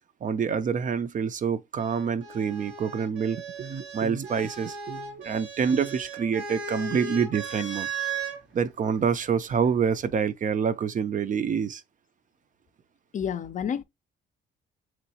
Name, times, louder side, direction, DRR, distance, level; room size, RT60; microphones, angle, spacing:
voice 1, 0.2-7.9 8.5-11.8, right 6 dB, 40° right, 0.4 m, -27 dB
sound 1, 1.8-8.4 9.5-10.1, right 5 dB, 85° right, 1.8 m, -37 dB
voice 2, 13.1-13.8, left 8 dB, 40° left, 0.4 m, -29 dB
3.6 x 3.1 x 2.8 m
cardioid pair, 90°, 20 cm